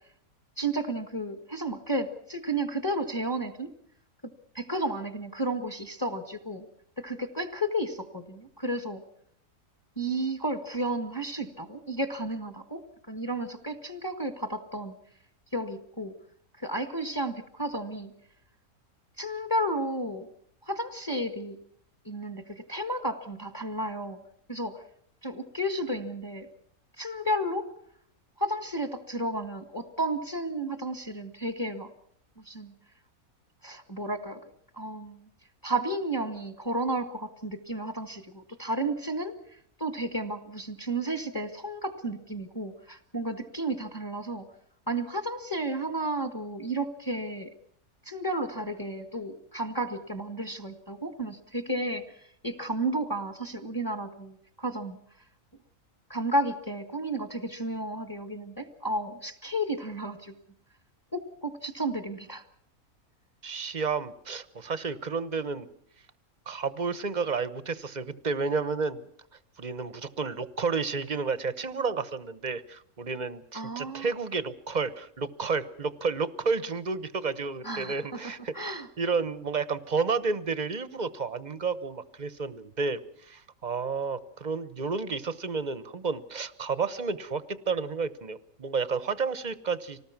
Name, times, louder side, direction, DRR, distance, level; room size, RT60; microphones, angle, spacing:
voice 1, 0.6-3.7 4.5-6.6 7.0-9.0 10.0-12.8 13.1-14.9 15.5-16.1 16.6-18.1 19.2-20.3 20.6-21.5 22.0-24.2 24.5-24.8 25.2-26.5 27.0-27.7 28.4-31.9 32.4-32.7 33.6-34.4 34.7-35.3 35.6-39.3 39.8-44.4 44.9-47.5 48.0-52.0 52.4-55.0 56.1-60.3 61.1-62.4 73.5-74.1 77.6-78.9, right 1 dB, 15° left, 8 dB, 1.5 m, -32 dB
voice 2, 63.4-65.7 66.5-69.0 69.6-90.0, right 4 dB, 35° right, 14 dB, 1.0 m, -31 dB
25.5 x 19.0 x 6.0 m, 0.71 s
omnidirectional pair, 1.5 m